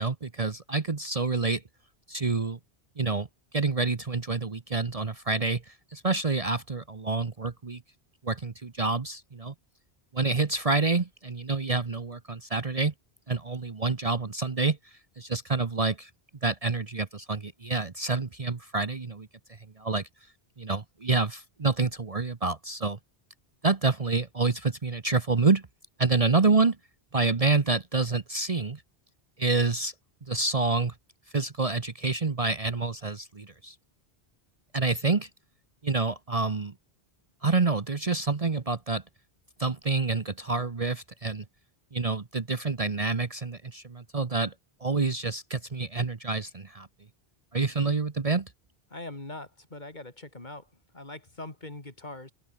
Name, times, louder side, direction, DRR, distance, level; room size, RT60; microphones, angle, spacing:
voice 1, 0.0-1.6 2.1-2.6 3.0-3.3 3.5-7.8 8.2-9.5 10.1-12.9 13.3-14.8 15.2-16.1 16.4-19.3 19.8-20.0 20.6-23.0 23.6-25.6 26.0-26.8 27.1-28.8 29.4-29.9 30.3-30.9 31.3-33.7 34.7-35.3 35.8-36.7 37.4-39.0 39.6-41.4 41.9-44.5 44.8-46.9 47.5-48.5, right 3 dB, 35° right, 1.1 m, -27 dB
voice 2, 48.9-50.7 50.9-52.3, left 2 dB, 45° left, 3.4 m, -42 dB
omnidirectional pair, 1.1 m